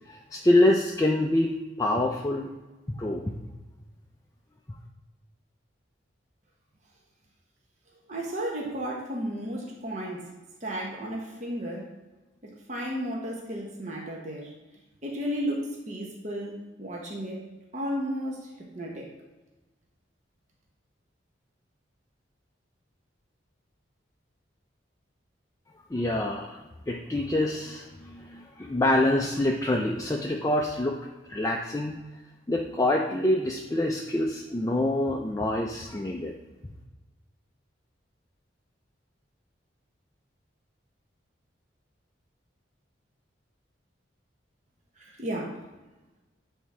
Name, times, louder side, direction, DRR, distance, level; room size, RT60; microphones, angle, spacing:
voice 1, 0.1-2.5 2.9-3.3 25.9-26.6 26.9-32.0 32.5-36.3, left 1 dB, 15° left, 0 dB, 0.4 m, -26 dB
voice 2, 8.1-10.3 10.6-11.9 12.4-14.5 15.0-17.4 17.7-19.1 45.0-45.6, equal, 40° right, -1 dB, 1.0 m, -33 dB
7.6 x 3.6 x 4.3 m, 1.2 s
head